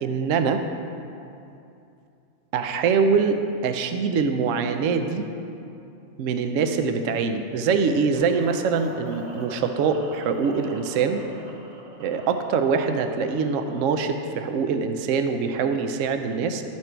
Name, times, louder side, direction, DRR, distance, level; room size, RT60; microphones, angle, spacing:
voice 1, 0.0-0.6 2.5-5.3 6.2-11.2 12.0-16.6, right 5 dB, 65° right, 7 dB, 0.9 m, -24 dB
sound 1, 8.1-14.1, equal, 30° right, 1.2 m, -42 dB
12.5 x 6.0 x 4.5 m, 2.7 s
omnidirectional pair, 1.5 m